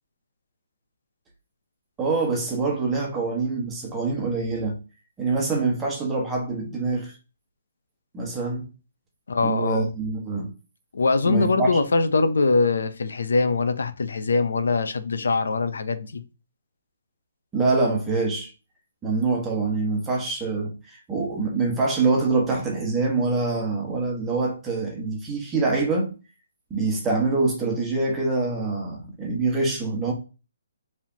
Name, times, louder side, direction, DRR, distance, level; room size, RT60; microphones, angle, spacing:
voice 1, 2.0-4.8 5.2-7.1 8.1-8.7 9.4-10.5 11.2-11.8 17.5-18.5 19.0-26.1 26.7-30.1, right 3 dB, 10° right, 1.4 m, -25 dB
voice 2, 9.3-9.9 10.9-16.2, left 3 dB, 85° left, 0.7 m, -22 dB
4.8 x 3.5 x 2.9 m
hypercardioid pair, 160°, 0 cm